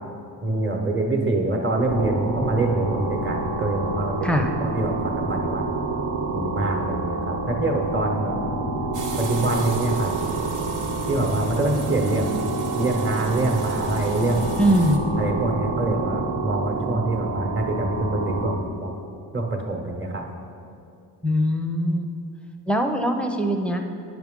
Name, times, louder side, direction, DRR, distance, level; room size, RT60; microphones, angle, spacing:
voice 1, 0.4-5.7 6.3-8.5 9.2-10.1 11.1-12.5 12.7-14.6 15.2-18.9 19.3-20.2, right 2 dB, 30° right, 2 dB, 1.0 m, -25 dB
sound 1, 1.8-18.6, right 3 dB, 75° right, 1.1 m, -28 dB
voice 2, 8.8-9.1 14.6-15.0 21.2-22.1 22.7-23.8, equal, 5° left, 4 dB, 0.5 m, -22 dB
sound 2, 8.9-15.0, right 4 dB, 50° right, 0.7 m, -36 dB
9.1 x 5.9 x 3.7 m, 2.6 s
cardioid pair, 105°, 41 cm